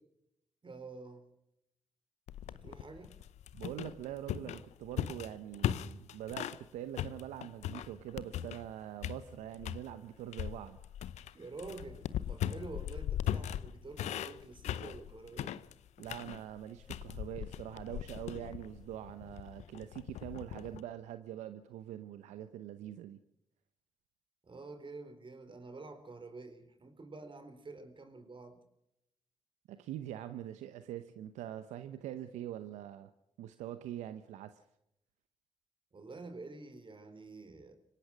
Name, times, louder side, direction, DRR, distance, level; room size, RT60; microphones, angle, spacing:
voice 1, 0.6-1.3 2.5-3.2 11.3-15.5 24.4-28.6 35.9-37.7, right 3 dB, 45° right, 4.4 m, -48 dB
sound 1, 2.3-6.6 7.0-8.7 9.0-9.9 10.3-20.8, left 11 dB, 75° left, 0.7 m, -39 dB
voice 2, 3.5-10.8 16.0-23.2 29.7-33.1 33.4-34.6, right 11 dB, 80° right, 0.8 m, -44 dB
25.0 x 17.5 x 6.2 m
hypercardioid pair, 40°, 12 cm